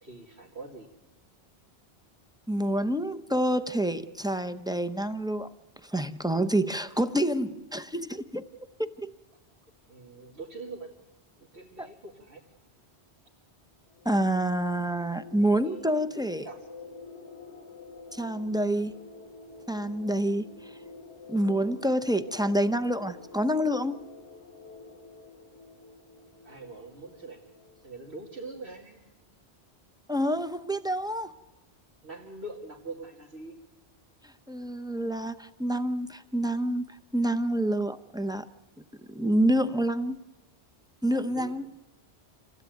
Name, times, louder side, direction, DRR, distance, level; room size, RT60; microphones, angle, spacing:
voice 1, 0.0-0.9 9.9-10.9 11.4-12.4 15.6-15.8 16.1-16.7 26.4-27.4 27.8-29.0 32.0-33.6 41.1-41.6, right 2 dB, 75° right, -3 dB, 2.7 m, -43 dB
voice 2, 2.5-5.5 5.8-8.5 8.8-9.1 11.8-11.9 14.0-16.5 18.1-18.9 19.7-20.7 21.3-24.0 30.1-31.3 34.5-36.8 37.1-38.5 39.1-40.2 41.0-41.7, right 1 dB, 5° right, 10 dB, 0.6 m, -27 dB
sound 1, 13.9-28.2, left 3 dB, 85° left, 1.6 m, -48 dB
27.0 x 16.0 x 9.2 m, 1.1 s
omnidirectional pair, 1.1 m